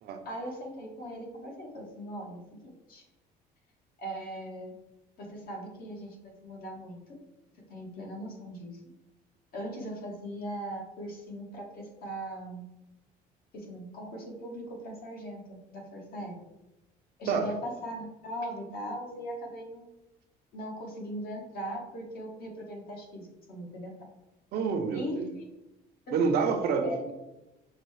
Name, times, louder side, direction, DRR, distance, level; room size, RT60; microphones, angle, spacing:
voice 1, 0.2-3.0 4.0-4.7 5.2-7.0 7.7-8.8 9.5-12.6 13.5-16.3 17.2-19.9 20.5-23.9 24.9-25.5 26.1-26.5 26.8-27.0, equal, 60° left, 0 dB, 1.3 m, -39 dB
voice 2, 24.5-25.3 26.1-27.1, right 5 dB, 70° right, 5 dB, 0.7 m, -28 dB
6.4 x 2.3 x 3.1 m, 0.98 s
cardioid pair, 110°, 17 cm